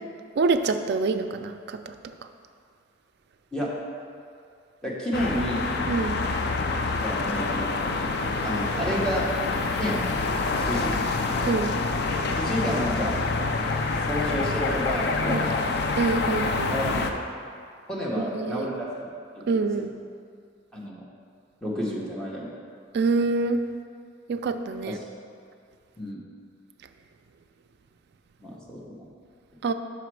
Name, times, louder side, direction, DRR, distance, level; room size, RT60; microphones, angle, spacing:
voice 1, 0.4-1.9 5.9-6.2 11.5-11.8 15.3-15.4 16.0-16.8 18.2-18.7 19.5-19.9 22.9-23.6 24.3-25.0 29.6-29.7, right 3 dB, 60° right, 8 dB, 0.4 m, -26 dB
voice 2, 4.8-5.7 6.9-8.0 8.4-9.3 9.7-10.0 10.6-11.0 12.4-13.2 14.0-15.7 16.7-17.1 17.9-19.1 19.6-19.7 20.7-21.0 21.6-22.5 24.9-25.0 26.0-26.2 28.4-29.1, equal, 5° left, -5 dB, 1.0 m, -30 dB
sound 1, 5.1-17.1, left 3 dB, 60° left, 0.4 m, -27 dB
6.0 x 4.9 x 4.7 m, 2.3 s
head